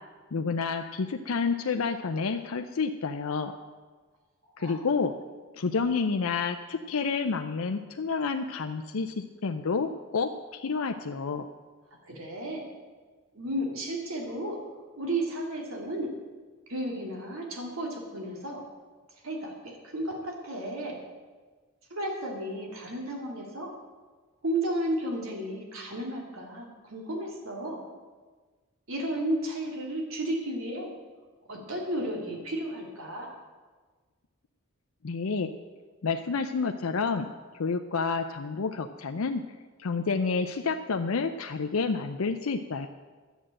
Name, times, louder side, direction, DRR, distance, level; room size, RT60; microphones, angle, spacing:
voice 1, 0.3-3.5 4.6-5.1 5.5-11.5 35.0-35.5 36.0-37.3 37.6-39.4 39.8-42.9, left 4 dB, 90° left, 6 dB, 0.6 m, -29 dB
voice 2, 12.1-12.7 13.3-14.6 15.0-16.1 16.7-18.6 19.2-21.0 21.9-23.7 24.4-27.8 28.9-30.9 31.5-33.4, right 1 dB, 80° right, 0 dB, 2.5 m, -33 dB
11.0 x 8.1 x 7.6 m, 1.4 s
head